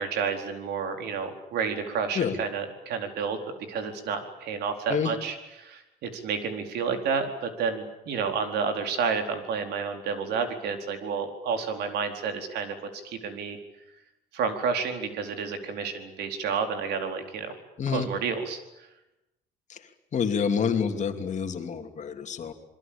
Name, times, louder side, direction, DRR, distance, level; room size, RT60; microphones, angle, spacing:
voice 1, 0.0-3.4 3.7-12.7 13.0-13.6 14.3-17.6 17.9-18.6, right 5 dB, 75° right, 6 dB, 4.4 m, -30 dB
voice 2, 20.1-22.5, left 6 dB, 45° left, 6 dB, 3.1 m, -27 dB
27.5 x 21.5 x 8.9 m, 0.93 s
cardioid pair, 110°, 17 cm